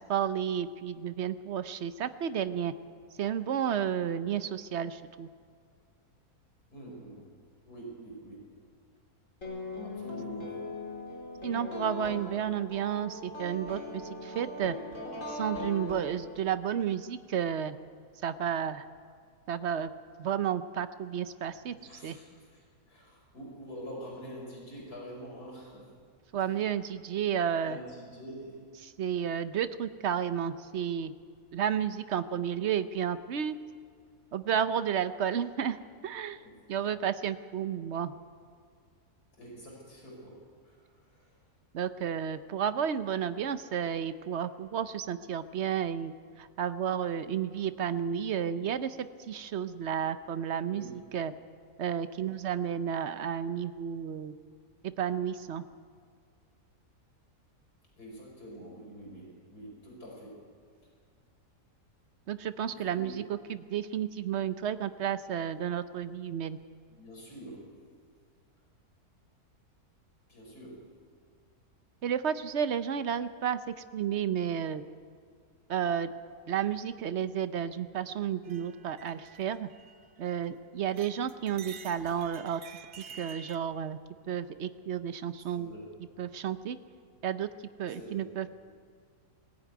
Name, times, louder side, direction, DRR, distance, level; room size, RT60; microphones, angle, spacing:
voice 1, 0.0-2.7 3.2-5.3 11.4-14.8 15.3-17.8 18.2-18.8 19.5-19.9 20.2-21.7 22.0-22.2 26.3-27.8 29.0-31.1 31.5-33.6 34.3-35.8 36.0-36.4 36.7-38.1 41.7-46.1 46.4-50.9 51.1-51.3 51.8-54.3 54.8-55.6 62.3-63.2 63.5-66.6 72.0-73.6 73.9-74.8 75.7-76.1 76.5-79.7 80.2-82.6 83.1-84.0 84.3-85.7 86.2-86.8 87.2-87.5 87.8-88.5, right 8 dB, 55° right, 12 dB, 0.9 m, -32 dB
voice 2, 6.7-7.3 7.7-8.5 9.8-10.6 21.7-25.9 26.4-26.7 27.6-28.7 36.3-36.8 39.4-41.4 50.7-51.0 58.0-60.5 62.7-63.2 66.9-67.7 70.3-70.8 85.5-85.9 87.9-88.3, right 1 dB, 80° left, -2 dB, 5.4 m, -46 dB
sound 1, 9.4-16.5, left 2 dB, 55° left, 4.0 m, -40 dB
sound 2, 78.4-80.6 80.9-83.6, right 6 dB, 80° right, 1.4 m, -50 dB
20.0 x 14.0 x 9.4 m, 2.1 s
omnidirectional pair, 1.6 m